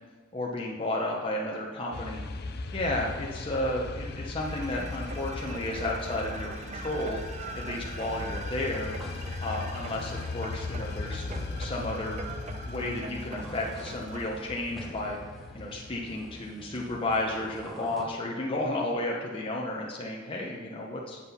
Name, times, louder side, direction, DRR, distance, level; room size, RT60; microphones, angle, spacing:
voice 1, 0.3-2.2 2.7-7.2 7.5-8.9 9.4-11.3 11.6-12.2 12.7-15.2 15.5-21.2, left 1 dB, 25° left, -2 dB, 0.9 m, -32 dB
sound 1, 1.9-17.6, left 3 dB, 50° left, 0.6 m, -38 dB
sound 2, 4.4-14.2, right 4 dB, 35° right, 0.6 m, -43 dB
Bowling Alley Ambience, 7.7-18.0, equal, ahead, 0.9 m, -48 dB
7.9 x 7.4 x 5.6 m, 1.5 s
head